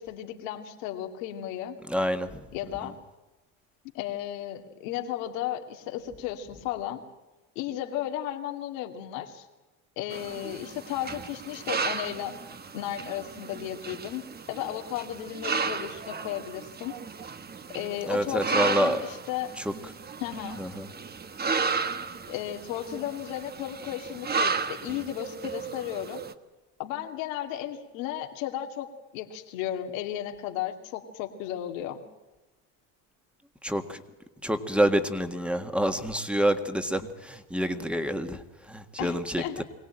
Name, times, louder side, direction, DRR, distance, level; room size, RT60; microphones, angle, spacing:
voice 1, 0.0-1.8 2.5-3.0 3.9-7.0 7.6-9.5 10.0-12.4 12.7-16.9 17.7-19.5 20.2-20.6 22.3-26.2 26.8-32.0 39.0-39.6, left 11 dB, 90° left, 5 dB, 2.3 m, -34 dB
voice 2, 1.9-2.5 2.8-2.9 18.1-19.0 19.6-19.7 20.6-20.9 33.6-34.0 34.4-39.6, right 1 dB, 5° right, 8 dB, 1.7 m, -27 dB
sound 1, 10.1-26.3, right 5 dB, 25° right, 1.2 m, -34 dB
23.5 x 17.5 x 8.9 m, 1.1 s
supercardioid pair, 105°, 38 cm